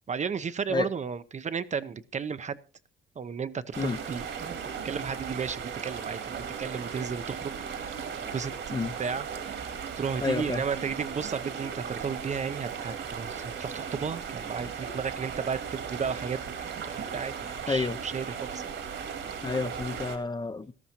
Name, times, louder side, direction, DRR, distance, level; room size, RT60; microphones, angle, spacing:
voice 1, 0.1-2.6 3.2-4.6 4.8-8.0 8.3-8.5 9.0-9.2 10.0-16.5 16.9-18.6, right 6 dB, 35° right, 0.7 m, -34 dB
sound 1, 3.7-20.2, right 7 dB, 70° right, 2.4 m, -37 dB
voice 2, 10.2-10.6 17.7-18.0 19.4-20.7, left 4 dB, 20° left, 0.6 m, -29 dB
18.5 x 13.0 x 2.9 m
cardioid pair, 90°, 20 cm